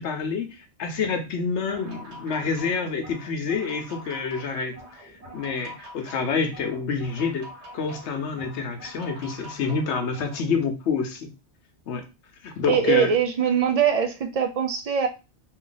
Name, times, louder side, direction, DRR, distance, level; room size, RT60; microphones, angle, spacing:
voice 1, 0.0-7.5 7.7-11.3 11.9-12.0 12.4-13.1, left 5 dB, 85° left, 6 dB, 1.0 m, -28 dB
sound 1, 1.5-10.4, equal, 90° right, 1.5 m, -45 dB
voice 2, 12.7-15.1, right 8 dB, 60° right, 5 dB, 0.4 m, -22 dB
2.8 x 2.6 x 3.8 m, 0.28 s
omnidirectional pair, 1.1 m